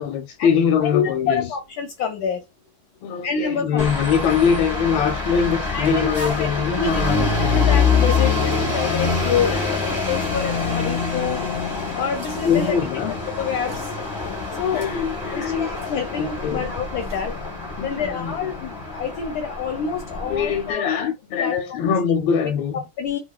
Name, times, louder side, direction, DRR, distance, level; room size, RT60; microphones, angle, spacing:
voice 1, 0.0-1.5 3.0-7.6 9.1-9.7 12.4-13.1 14.7-15.7 16.1-16.7 17.8-18.3 20.3-22.8, left 7 dB, 85° left, 1.3 m, -23 dB
voice 2, 0.8-2.4 3.2-3.8 5.7-6.5 6.8-7.0 7.5-11.5 11.9-12.8 13.4-13.9 14.5-14.9 15.3-17.4 17.8-20.9 21.4-21.5 21.8-21.9 22.4-22.5 23.0-23.2, left 6 dB, 70° left, 1.0 m, -27 dB
sound 1, 3.8-20.7, left 4 dB, 20° left, 0.7 m, -25 dB
sound 2, 12.1-13.3 13.6-14.0 14.3-14.4 14.7-15.1 15.7-16.6 17.0-17.5, right 2 dB, 20° right, 1.1 m, -46 dB
2.9 x 2.8 x 2.2 m
omnidirectional pair, 2.1 m